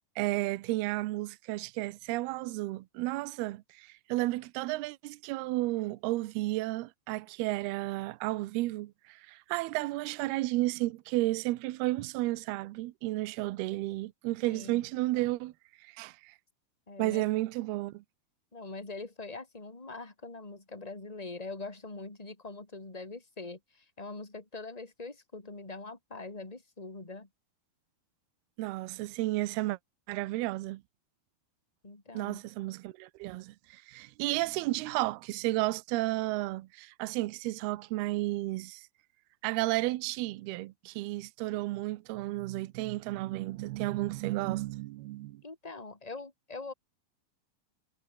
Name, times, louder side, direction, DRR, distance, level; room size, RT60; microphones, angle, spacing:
voice 1, 0.2-15.5 15.8-16.3 17.0-18.0 28.6-29.8 30.1-30.8 32.1-38.8 39.4-45.4, right 19 dB, 80° right, 2.6 m, -32 dB
voice 2, 14.5-14.9 16.9-17.3 18.5-27.3 31.8-32.4 45.4-46.7, left 3 dB, 10° left, 2.4 m, -43 dB
omnidirectional pair, 5.1 m